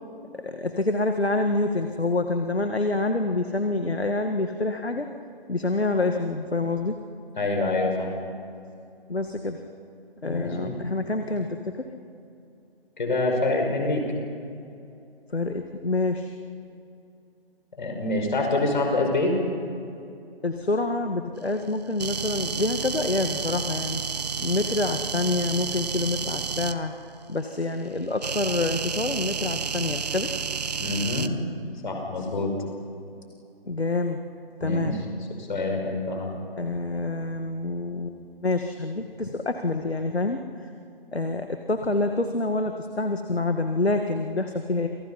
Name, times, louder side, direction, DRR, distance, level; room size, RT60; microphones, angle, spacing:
voice 1, 0.3-5.1 5.5-7.0 9.1-9.6 10.2-11.9 15.3-16.3 20.4-24.0 24.4-26.9 27.3-30.3 33.6-34.2 34.6-35.0 36.6-40.7 41.1-44.9, left 2 dB, 85° left, 6 dB, 2.0 m, -27 dB
voice 2, 7.4-8.1 10.2-10.8 13.0-14.0 17.8-19.3 30.8-31.3 31.8-32.5 34.6-35.0 35.4-36.3, left 2 dB, 50° left, 2 dB, 5.8 m, -26 dB
sound 1, 22.0-26.7 28.2-31.3, right 6 dB, 40° right, 1.1 m, -30 dB
29.0 x 28.5 x 5.7 m, 2.6 s
figure-of-eight pair, 155°, 31 cm